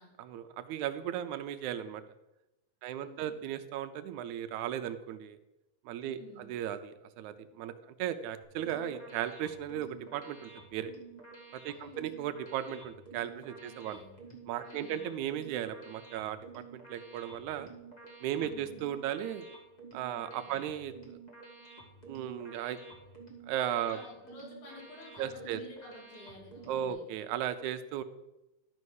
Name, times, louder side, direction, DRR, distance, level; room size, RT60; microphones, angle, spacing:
voice 1, 0.2-2.0 2.8-5.4 5.9-7.7 8.0-10.9 11.5-14.0 14.5-17.7 18.2-19.5 19.9-21.2 22.1-22.8 23.5-24.0 25.2-25.6 26.7-28.0, right 10 dB, 85° right, 10 dB, 2.0 m, -36 dB
voice 2, 2.8-3.5 6.0-6.5 11.7-12.1 13.6-14.2 14.6-15.1 18.3-18.9 20.1-20.7 23.9-27.1, left 3 dB, 80° left, -2 dB, 4.3 m, -52 dB
sound 1, 8.4-26.9, right 4 dB, 20° left, 1.2 m, -51 dB
12.0 x 5.4 x 6.4 m, 0.97 s
omnidirectional pair, 3.4 m